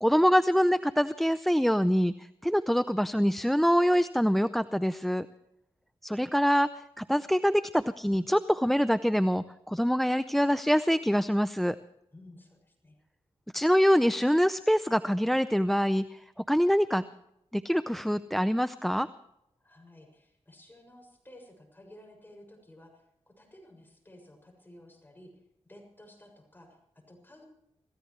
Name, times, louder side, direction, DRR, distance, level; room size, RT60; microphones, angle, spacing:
voice 1, 0.0-5.3 6.0-6.7 7.0-11.8 13.5-16.2 16.5-17.0 17.5-19.1, equal, ahead, 13 dB, 0.5 m, -25 dB
voice 2, 12.1-13.0 19.6-25.4 25.7-27.4, left 1 dB, 20° left, 2 dB, 6.8 m, -54 dB
27.5 x 15.5 x 3.2 m, 0.80 s
cardioid pair, 75°, 11 cm